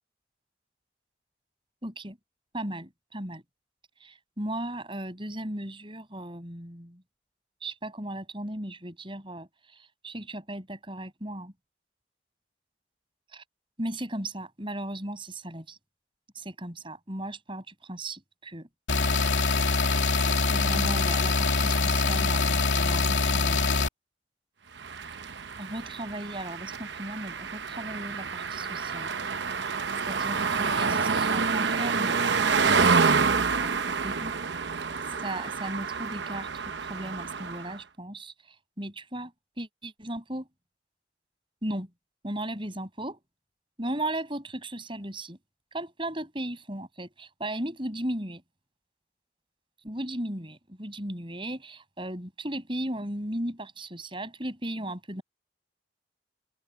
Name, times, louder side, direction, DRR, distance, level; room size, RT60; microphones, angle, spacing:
voice 1, 1.8-2.2 2.5-3.4 4.0-7.0 7.6-11.5 13.3-13.4 13.8-15.8 16.3-18.7 20.5-23.7 25.6-29.1 29.6-29.7 30.1-34.3 35.2-36.6 36.9-39.3 39.6-40.5 41.6-41.9 42.2-43.2 43.8-45.4 45.7-48.4 49.8-55.2, right 1 dB, 30° right, 6.5 m, -36 dB
sound 1, 18.9-23.9, left 3 dB, 80° left, 2.8 m, -24 dB
sound 2, 24.8-37.8, right 5 dB, 70° right, 1.0 m, -28 dB
open air
head